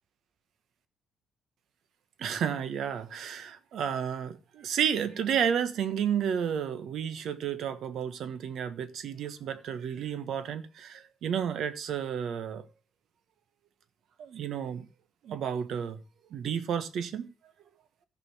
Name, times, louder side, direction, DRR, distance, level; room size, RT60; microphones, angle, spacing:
voice 1, 2.2-12.6 14.2-14.8 15.2-16.0 16.3-17.3, right 8 dB, 70° right, 1.2 m, -31 dB
14.5 x 5.1 x 6.1 m
cardioid pair, 90°, 0 cm